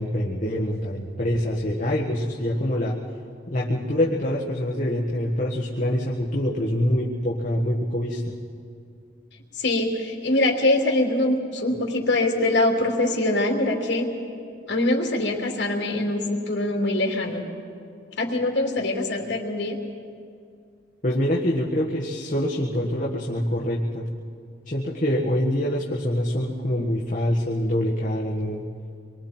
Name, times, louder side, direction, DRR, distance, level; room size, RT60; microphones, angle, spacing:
voice 1, 0.0-3.0 3.5-8.4 21.0-24.1 24.7-28.6, left 1 dB, 45° left, -3 dB, 1.5 m, -25 dB
voice 2, 9.6-14.1 14.7-17.4 18.2-19.8, left 2 dB, 75° left, 0 dB, 3.0 m, -23 dB
27.5 x 23.0 x 4.5 m, 2.4 s
head